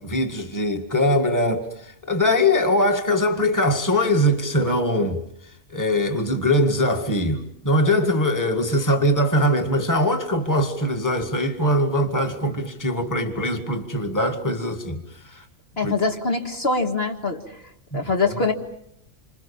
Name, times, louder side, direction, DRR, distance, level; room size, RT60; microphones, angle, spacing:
voice 1, 0.0-5.2 5.7-15.5 15.8-15.9 17.9-18.1, left 1 dB, 15° left, 1.9 m, -22 dB
voice 2, 15.8-17.6 17.9-18.5, left 3 dB, 45° left, 2.1 m, -23 dB
27.5 x 26.5 x 7.1 m
omnidirectional pair, 1.4 m